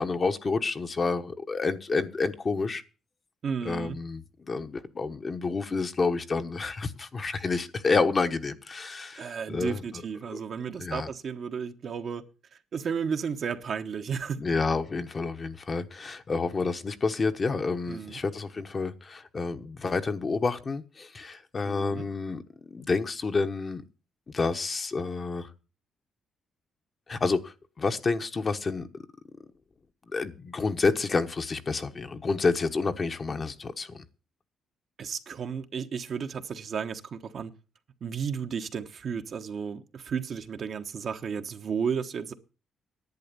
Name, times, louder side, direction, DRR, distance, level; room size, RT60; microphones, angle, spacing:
voice 1, 0.0-2.8 3.6-9.8 10.3-10.4 10.8-11.1 14.4-22.4 22.7-23.8 24.3-25.5 27.1-28.9 30.1-34.0, left 4 dB, 35° left, 1.1 m, -29 dB
voice 2, 3.4-4.0 9.2-12.2 12.7-14.4 17.9-18.2 21.6-22.1 35.0-37.5 38.0-42.3, right 6 dB, 55° right, 1.1 m, -33 dB
11.0 x 8.5 x 6.8 m
cardioid pair, 90°, 0 cm